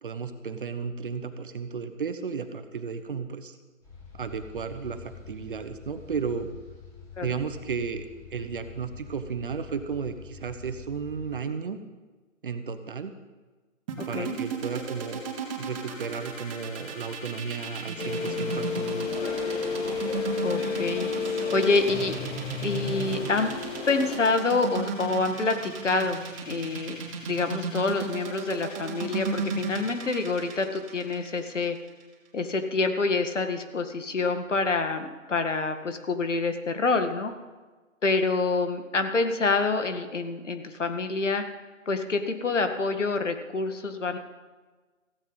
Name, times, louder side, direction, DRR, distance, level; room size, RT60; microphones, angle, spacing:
voice 1, 0.0-3.6 4.1-6.5 7.2-8.1 8.3-11.8 12.4-13.2 14.1-15.2 15.6-19.2, right 5 dB, 40° right, 9 dB, 1.1 m, -33 dB
sound 1, 3.8-11.3, left 6 dB, 10° left, 4.4 m, -47 dB
sound 2, 13.9-32.0, right 5 dB, 25° right, 2.6 m, -34 dB
voice 2, 14.0-14.4 20.4-22.1 22.6-23.5 23.9-31.8 32.3-37.3 38.0-41.4 41.9-44.2, left 3 dB, 65° left, 7 dB, 1.9 m, -27 dB
sound 3, 18.0-24.2, left 5 dB, 50° left, 2.8 m, -32 dB
16.5 x 15.5 x 4.1 m, 1.3 s
figure-of-eight pair, 145°, 40 cm